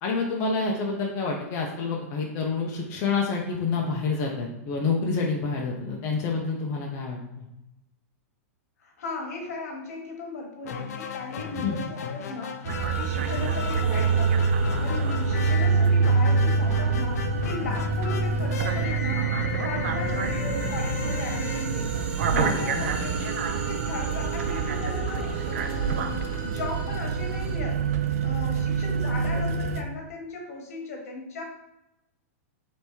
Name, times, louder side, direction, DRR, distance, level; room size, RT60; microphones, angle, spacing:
voice 1, 0.0-7.5 11.5-11.8 22.3-23.1, left 4 dB, 30° left, -1 dB, 0.6 m, -28 dB
voice 2, 8.8-14.5 14.8-19.3 19.6-22.1 22.4-23.1 23.6-27.8 28.2-31.4, left 3 dB, 70° left, 1 dB, 1.3 m, -37 dB
sound 1, 10.6-22.5, left 7 dB, 85° left, 0.5 m, -36 dB
sound 2, 12.6-29.8, right 5 dB, 65° right, 0.5 m, -26 dB
sound 3, 12.9-19.3 19.7-27.6, right 3 dB, 15° right, 0.6 m, -40 dB
3.4 x 3.1 x 4.3 m, 0.88 s
supercardioid pair, 160°, 8 cm